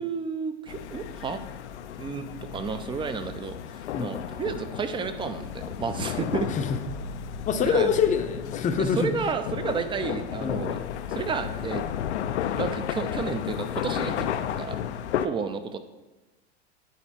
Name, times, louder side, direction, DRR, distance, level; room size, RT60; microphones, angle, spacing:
voice 1, 0.0-1.4 2.0-2.2 2.5-6.5 7.6-7.9 8.8-10.8 11.1-11.9 12.6-14.8 15.2-15.8, right 5 dB, 15° right, 10 dB, 0.5 m, -31 dB
sound 1, 0.7-15.3, left 9 dB, 70° left, 0.6 m, -33 dB
voice 2, 7.5-9.1 10.4-10.6, left 6 dB, 20° left, 5 dB, 0.7 m, -25 dB
9.4 x 4.3 x 4.3 m, 1.1 s
hypercardioid pair, 100°, 35 cm